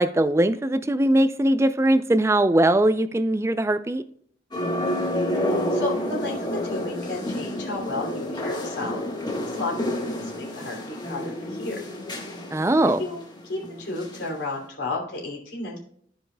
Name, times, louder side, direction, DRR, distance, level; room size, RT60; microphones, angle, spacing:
voice 1, 0.0-4.0 12.5-13.0, right 1 dB, 15° right, 13 dB, 0.4 m, -20 dB
sound 1, 4.5-14.3 14.6-14.7, left 1 dB, 25° left, 1.5 m, -29 dB
voice 2, 5.4-9.1 9.5-11.8 13.0-15.8, left 2 dB, 75° left, -1 dB, 2.8 m, -33 dB
15.5 x 5.2 x 2.2 m, 0.66 s
head